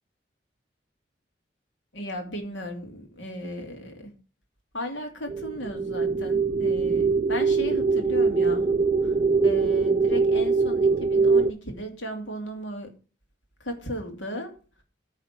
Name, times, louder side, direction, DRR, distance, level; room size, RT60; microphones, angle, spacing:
voice 1, 1.9-4.1 4.7-8.7 9.0-9.2 9.4-12.9 13.6-14.6, equal, 80° left, 3 dB, 2.5 m, -35 dB
sound 1, 5.3-11.5, right 4 dB, 30° right, 0.4 m, -22 dB
10.0 x 4.1 x 7.5 m, 0.36 s
head